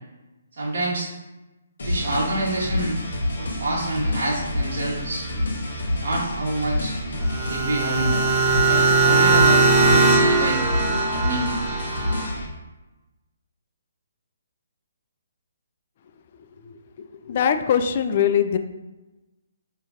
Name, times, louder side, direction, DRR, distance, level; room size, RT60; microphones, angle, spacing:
voice 1, 0.5-1.1 1.8-3.0 3.4-5.2 6.0-7.0 7.5-8.1 8.6-10.7 11.1-11.8, right 1 dB, 55° right, -5 dB, 0.9 m, -27 dB
sound 1, 1.8-12.5, left 1 dB, 60° left, 0.8 m, -28 dB
sound 2, 7.2-12.3, right 3 dB, 20° right, 0.9 m, -20 dB
voice 2, 16.7-18.6, left 8 dB, 40° left, 8 dB, 0.3 m, -22 dB
5.0 x 2.7 x 2.4 m, 1.1 s
figure-of-eight pair, 135°, 0 cm